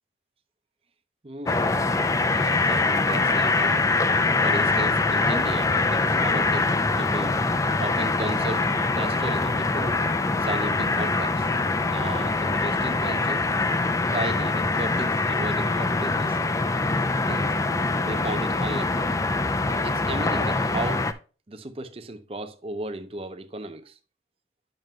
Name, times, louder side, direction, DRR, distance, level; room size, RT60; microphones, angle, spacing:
voice 1, 1.2-1.7 2.3-3.9 4.4-7.4 7.8-8.7 9.0-10.0 10.4-11.5 11.9-13.5 14.1-16.4 17.2-17.5 18.0-19.1 19.7-21.1 21.5-24.0, right 2 dB, 30° right, 0.6 m, -35 dB
sound 1, 1.5-21.1, left 3 dB, 20° left, 0.4 m, -24 dB
9.0 x 6.3 x 2.2 m
head